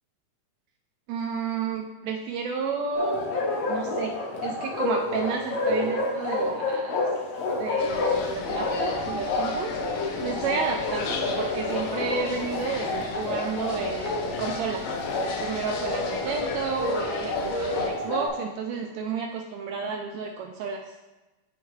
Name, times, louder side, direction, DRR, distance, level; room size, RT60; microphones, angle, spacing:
voice 1, 1.1-3.2 3.6-4.2 4.4-7.0 7.6-9.8 10.2-14.8 15.4-20.8, right 5 dB, 85° right, 1 dB, 1.6 m, -31 dB
Bark, 2.9-18.3, left 2 dB, 65° left, 1.8 m, -29 dB
sound 1, 7.8-17.9, left 4 dB, 90° left, 2.3 m, -36 dB
10.5 x 4.6 x 2.4 m, 1.1 s
omnidirectional pair, 3.6 m